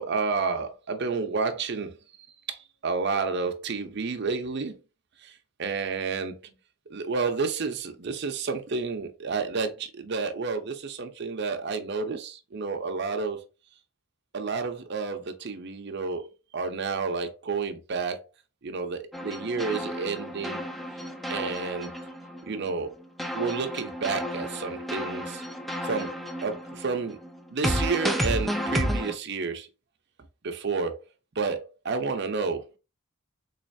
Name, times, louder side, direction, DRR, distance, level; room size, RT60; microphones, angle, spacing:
voice 1, 0.0-1.9 2.5-4.8 5.2-5.3 5.6-6.5 6.9-13.4 14.3-18.2 18.6-20.6 21.3-21.9 22.4-23.0 23.3-25.4 25.8-26.1 26.4-27.2 27.5-29.7 30.4-31.0 31.4-32.6, right 4 dB, 55° right, 0.6 m, -30 dB
sound 1, 19.1-22.8 23.2-29.1, equal, ahead, 0.3 m, -32 dB
3.9 x 3.2 x 2.6 m
head